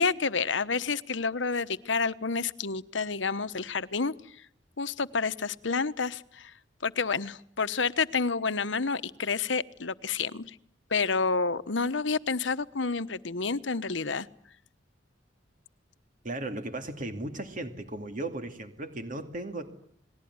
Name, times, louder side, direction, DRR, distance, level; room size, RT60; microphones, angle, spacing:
voice 1, 0.0-4.1 4.8-6.5 6.8-10.5 10.9-14.3, left 4 dB, 75° left, 13 dB, 1.2 m, -29 dB
voice 2, 16.2-19.7, right 2 dB, 45° right, 7 dB, 2.5 m, -36 dB
29.5 x 20.5 x 9.6 m, 0.66 s
head